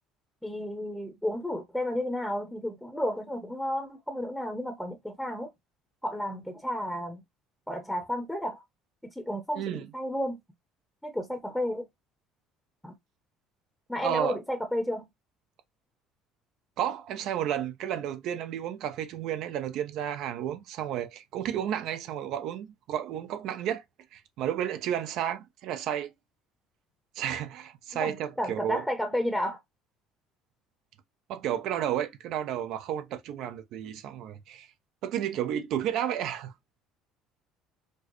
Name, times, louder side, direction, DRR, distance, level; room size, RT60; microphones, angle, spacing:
voice 1, 0.4-5.5 6.0-7.2 7.7-8.6 9.1-10.4 11.0-11.8 12.8-13.0 13.9-15.1 28.0-29.6, equal, 5° left, 0.8 m, -32 dB
voice 2, 9.5-9.9 14.0-14.4 16.8-23.8 24.1-26.1 27.2-28.8 31.3-34.7 35.0-36.5, right 10 dB, 65° right, 0.6 m, -32 dB
4.3 x 2.1 x 3.0 m
supercardioid pair, 105°, 0 cm